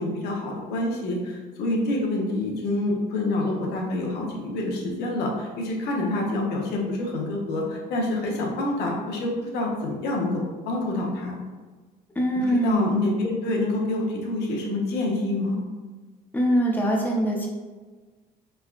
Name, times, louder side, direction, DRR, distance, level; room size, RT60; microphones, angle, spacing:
voice 1, 0.0-11.4 12.3-15.6, left 2 dB, 75° left, -1 dB, 0.7 m, -27 dB
voice 2, 12.2-12.8 16.3-17.5, right 1 dB, 10° left, -2 dB, 0.6 m, -23 dB
3.3 x 2.2 x 2.4 m, 1.3 s
cardioid pair, 110°, 17 cm